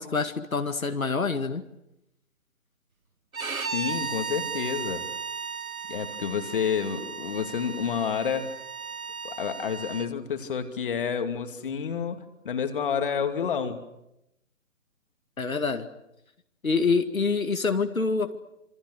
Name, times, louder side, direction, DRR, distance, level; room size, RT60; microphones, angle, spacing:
voice 1, 0.0-1.6 15.4-15.9 16.6-18.4, left 4 dB, 75° left, 7 dB, 2.1 m, -26 dB
Bowed string instrument, 3.3-10.1, right 6 dB, 80° right, 1.5 m, -35 dB
voice 2, 3.7-5.1 5.9-8.5 9.2-13.8, left 7 dB, 40° left, 7 dB, 2.6 m, -29 dB
27.5 x 26.5 x 6.7 m, 0.85 s
figure-of-eight pair, 150°, 41 cm